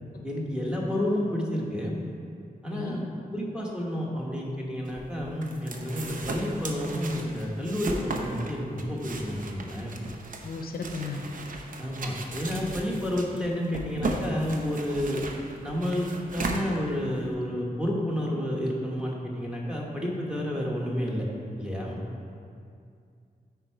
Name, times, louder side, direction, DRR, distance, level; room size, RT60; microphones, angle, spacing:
voice 1, 0.2-2.0 2.6-3.0 3.3-10.0 11.8-15.3 15.6-21.3 21.6-22.0, equal, 5° right, -3 dB, 1.1 m, -30 dB
voice 2, 2.6-3.0 10.4-11.2, left 4 dB, 75° left, 4 dB, 0.6 m, -35 dB
sound 1, 4.9-17.3, right 2 dB, 60° right, 0.7 m, -36 dB
9.2 x 4.5 x 4.5 m, 2.4 s
wide cardioid pair, 165°, 16 cm